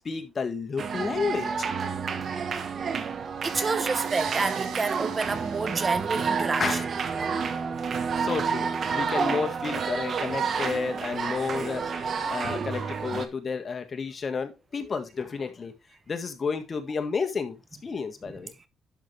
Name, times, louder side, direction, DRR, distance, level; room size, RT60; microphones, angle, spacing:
voice 1, 0.0-1.7 6.6-6.9 8.1-15.7 16.1-18.5, left 5 dB, 40° left, 1.8 m, -31 dB
sound 1, 0.8-13.3, right 5 dB, 55° right, 1.3 m, -29 dB
voice 2, 3.4-6.8 7.2-7.4, right 4 dB, 30° right, 0.8 m, -29 dB
sound 2, 4.0-7.6, right 8 dB, 75° right, 1.7 m, -45 dB
11.5 x 5.7 x 3.4 m
cardioid pair, 90°, 0 cm